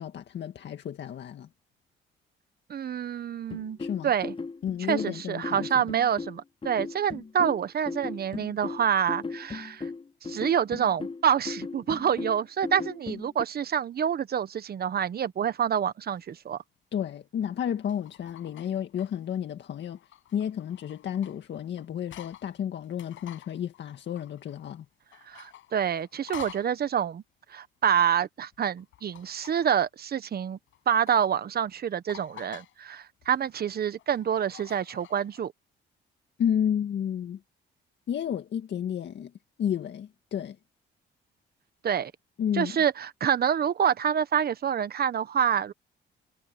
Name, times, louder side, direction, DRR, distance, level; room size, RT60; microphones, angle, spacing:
voice 1, 0.0-1.5 3.8-4.1 4.6-5.8 16.9-20.0 20.3-24.9 36.4-37.4 38.1-39.3 39.6-40.6 42.4-42.8, left 9 dB, 65° left, 1.9 m, -31 dB
voice 2, 2.7-3.8 4.0-4.3 4.9-9.9 10.2-16.6 25.3-27.2 27.5-30.6 30.9-35.5 41.8-42.1 42.5-45.7, right 8 dB, 50° right, 1.3 m, -27 dB
sound 1, 3.5-13.4, left 4 dB, 25° left, 1.1 m, -37 dB
sound 2, 16.2-16.3 17.6-19.3 19.8-22.5 22.8-24.8 25.1-26.8 28.8-29.8 30.7-31.2 31.6-31.7 32.1-32.8 33.2-35.5, left 13 dB, 80° left, 6.1 m, -49 dB
cardioid pair, 90°, 20 cm